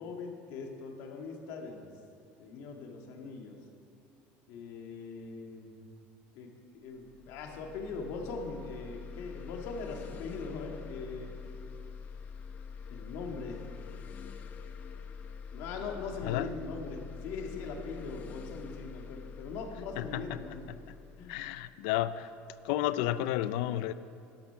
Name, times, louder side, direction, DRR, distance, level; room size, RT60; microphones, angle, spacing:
voice 1, 0.0-1.9 2.4-3.6 4.5-5.7 6.3-11.3 12.9-13.6 15.5-20.6 21.2-21.3, left 4 dB, 65° left, 1.9 m, -41 dB
sound 1, 6.9-22.3, left 6 dB, 35° left, 0.7 m, -45 dB
voice 2, 21.3-22.3 22.6-23.9, left 13 dB, 80° left, 0.5 m, -31 dB
12.5 x 12.0 x 5.8 m
cardioid pair, 165°, 5 cm